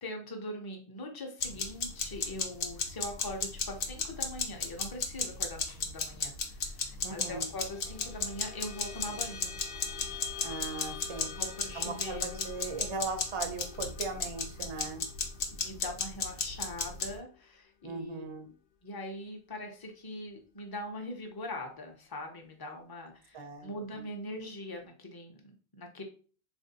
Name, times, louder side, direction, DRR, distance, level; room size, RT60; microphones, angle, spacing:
voice 1, 0.0-9.6 11.2-12.5 14.6-14.7 15.5-18.5 18.8-26.0, left 1 dB, 30° left, 3 dB, 0.5 m, -42 dB
sound 1, 1.4-17.2, left 5 dB, 60° left, 0.8 m, -35 dB
sound 2, 6.9-17.7, left 9 dB, 90° left, 0.9 m, -47 dB
voice 2, 7.0-7.4 10.4-11.3 11.7-15.1 17.8-18.5 23.3-23.7, right 3 dB, 45° right, 5 dB, 0.4 m, -38 dB
3.6 x 2.5 x 2.7 m, 0.40 s
omnidirectional pair, 1.1 m